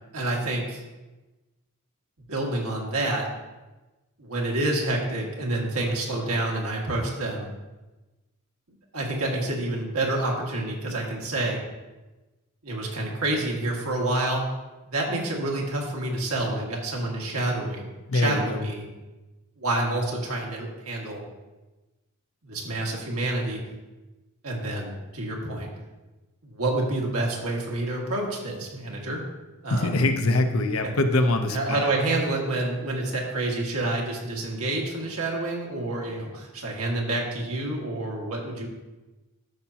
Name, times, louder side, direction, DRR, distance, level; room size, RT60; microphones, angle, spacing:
voice 1, 0.1-0.8 2.3-3.3 4.2-7.5 8.9-11.6 12.6-14.5 14.8-18.9 19.6-21.2 22.4-23.6 24.4-25.7 26.4-29.2 29.6-29.9 30.8-30.9 31.5-38.7, right 2 dB, 85° right, -1 dB, 1.9 m, -28 dB
voice 2, 18.1-18.6 29.7-31.9, left 2 dB, 70° left, 6 dB, 0.8 m, -23 dB
12.5 x 6.0 x 2.9 m, 1.1 s
head